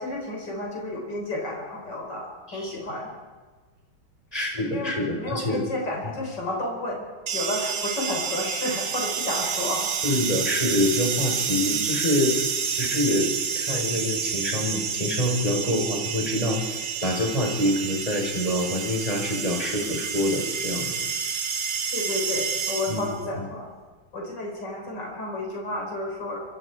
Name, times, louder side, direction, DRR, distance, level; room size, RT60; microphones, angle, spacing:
voice 1, 0.0-3.1 4.7-7.1 7.3-9.9 21.9-23.7 24.1-26.4, left 2 dB, 55° left, -1 dB, 6.1 m, -31 dB
voice 2, 4.3-5.6 10.0-12.3 12.7-13.3 13.6-16.6 17.0-20.9 22.9-23.0, left 1 dB, 15° left, 0 dB, 5.1 m, -26 dB
sound 1, 7.3-23.2, right 6 dB, 70° right, 2.0 m, -29 dB
26.5 x 25.0 x 4.9 m, 1.4 s
omnidirectional pair, 2.3 m